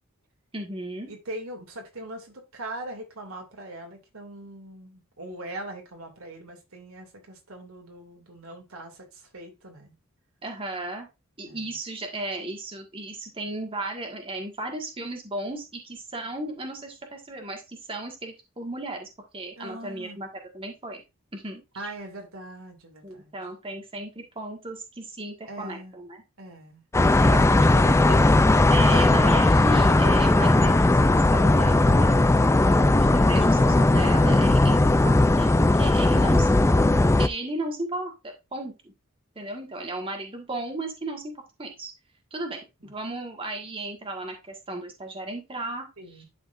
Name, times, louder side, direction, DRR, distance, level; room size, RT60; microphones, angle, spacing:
voice 1, 0.5-1.1 10.4-11.1 11.4-19.1 19.3-20.3 20.5-21.0 21.3-21.6 23.0-26.2 28.7-32.3 33.1-36.8 37.2-38.9 39.3-41.3 41.6-41.9 42.3-45.9 46.2-46.3, right 2 dB, 25° right, 1.5 m, -35 dB
voice 2, 1.1-10.0 11.5-11.8 19.6-20.2 21.7-23.3 25.5-25.9 26.4-26.8 27.3-28.4 32.6-33.0 42.8-42.9 46.0-46.3, right 1 dB, 90° right, 2.4 m, -40 dB
sound 1, 26.9-37.3, left 2 dB, 15° left, 0.3 m, -18 dB
11.5 x 4.2 x 2.5 m
head